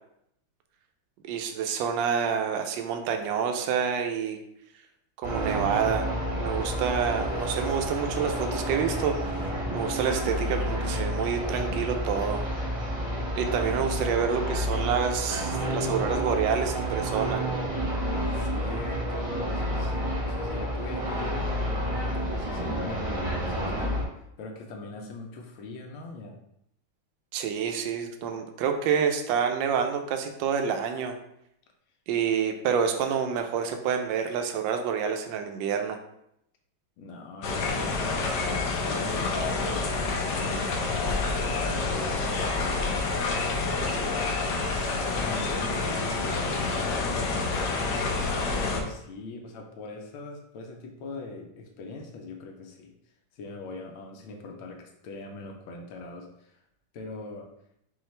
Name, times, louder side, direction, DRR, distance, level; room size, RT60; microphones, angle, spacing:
voice 1, 1.2-4.4 5.2-6.1 6.3-12.4 13.3-17.4 27.3-31.2 32.1-36.0, right 7 dB, 75° right, 5 dB, 1.2 m, -28 dB
sound 1, 5.2-24.0, equal, 30° right, 0.8 m, -30 dB
voice 2, 18.1-21.7 22.0-24.1 24.4-26.4 37.0-42.8 43.8-48.3 48.5-52.9 53.3-56.6 56.9-57.5, left 3 dB, 85° left, 2 dB, 1.5 m, -41 dB
sound 2, 37.4-48.8, left 3 dB, 70° left, 1.1 m, -28 dB
5.5 x 2.4 x 3.2 m, 0.77 s
omnidirectional pair, 2.2 m